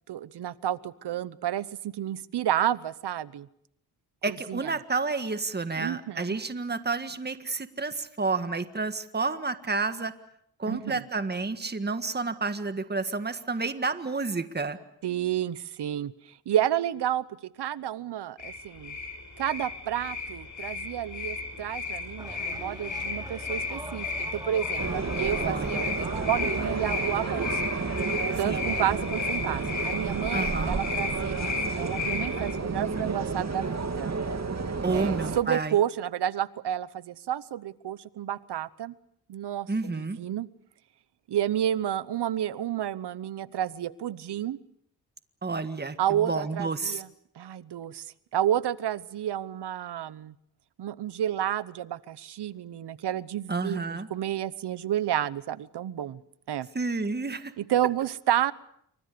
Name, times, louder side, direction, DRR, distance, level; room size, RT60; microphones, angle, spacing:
voice 1, 0.1-3.5 4.3-4.7 5.8-6.4 10.7-11.0 15.0-19.0 19.4-27.6 28.4-34.1 34.9-38.9 39.3-39.7 39.9-40.5 41.3-44.6 46.0-47.1 47.4-50.3 50.8-56.2 56.5-56.7 57.6-58.5, right 11 dB, 85° right, 18 dB, 1.0 m, -30 dB
voice 2, 4.2-10.1 10.6-14.8 25.4-25.9 28.4-28.6 30.3-30.8 34.8-35.7 39.7-40.2 45.4-47.0 53.5-54.1 56.7-57.5, right 3 dB, 25° right, 10 dB, 1.7 m, -30 dB
sound 1, 18.4-32.5, left 4 dB, 50° left, 5.5 m, -34 dB
sound 2, 22.2-29.0, right 1 dB, 10° right, 4.3 m, -44 dB
sound 3, 24.8-35.4, right 4 dB, 40° right, 2.6 m, -31 dB
27.5 x 25.0 x 6.8 m, 0.69 s
cardioid pair, 75°, 39 cm